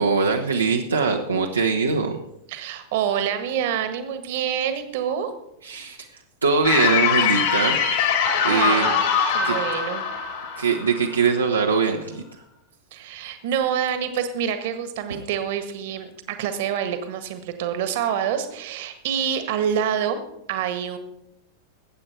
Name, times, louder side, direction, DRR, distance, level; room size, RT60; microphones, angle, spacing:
voice 1, 0.0-2.2 5.6-6.1 6.4-7.8 8.4-8.9 9.4-9.5 10.6-12.2 15.1-15.2, right 4 dB, 80° right, 0 dB, 1.1 m, -22 dB
voice 2, 2.5-5.3 8.4-10.0 12.9-20.2 20.5-21.0, right 8 dB, 50° right, 9 dB, 1.6 m, -27 dB
sound 1, 6.6-11.7, left 7 dB, 55° left, 3.5 m, -23 dB
19.5 x 8.7 x 4.5 m, 0.81 s
figure-of-eight pair, 90°, 0 cm